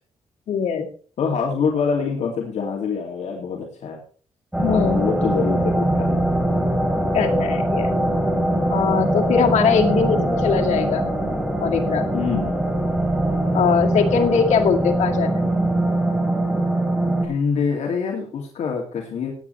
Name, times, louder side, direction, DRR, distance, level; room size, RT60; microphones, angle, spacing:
voice 1, 0.5-0.9 4.6-5.0 7.1-7.9 8.7-11.1 11.6-12.1 13.5-15.5, left 6 dB, 90° left, 1 dB, 2.1 m, -21 dB
voice 2, 1.2-4.0 4.7-6.3 10.1-10.3 12.1-12.6 17.0-19.3, left 6 dB, 75° left, 0 dB, 2.5 m, -25 dB
sound 1, 4.5-17.3, right 1 dB, 10° right, 3.7 m, -22 dB
18.0 x 9.4 x 3.3 m, 0.42 s
cardioid pair, 120°, 12 cm